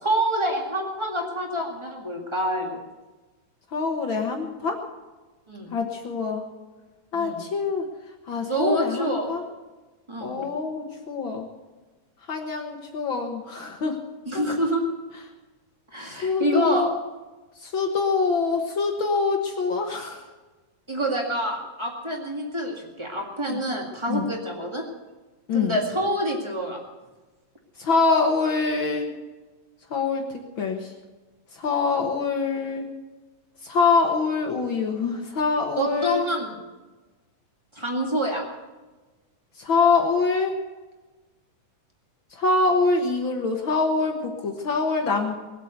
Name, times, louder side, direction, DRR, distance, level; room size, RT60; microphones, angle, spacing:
voice 1, 0.0-2.8 5.5-5.7 7.1-7.4 8.5-9.3 10.1-10.4 14.2-14.8 15.9-16.9 20.9-24.9 25.5-26.8 35.8-36.6 37.7-38.4, equal, 30° right, 1 dB, 0.5 m, -27 dB
voice 2, 3.7-4.8 5.7-6.4 7.1-7.8 8.3-9.4 10.2-11.5 12.3-14.0 14.3-14.4 16.2-16.9 17.6-20.2 23.5-23.6 24.1-24.3 25.5-25.8 27.8-29.1 29.9-30.2 30.6-30.9 31.6-32.8 33.6-36.2 39.6-40.5 42.4-45.3, left 4 dB, 70° left, 3 dB, 1.1 m, -24 dB
20.5 x 8.4 x 8.2 m, 1.2 s
omnidirectional pair, 4.2 m